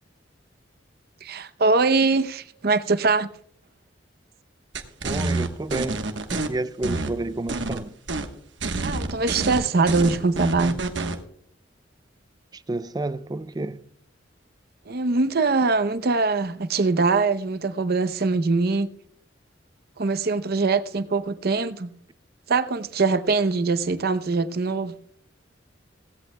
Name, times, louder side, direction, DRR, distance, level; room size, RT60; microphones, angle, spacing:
voice 1, 1.2-3.3 8.8-10.8 14.9-18.9 20.0-21.9 22.5-24.9, right 3 dB, 55° right, 0.7 m, -22 dB
sound 1, 4.7-6.5 6.8-7.8 8.1-8.3 8.6-11.2, right 3 dB, 75° right, 1.2 m, -28 dB
voice 2, 5.0-8.0 12.5-13.9, right 2 dB, 20° right, 0.4 m, -30 dB
17.0 x 16.5 x 2.2 m
head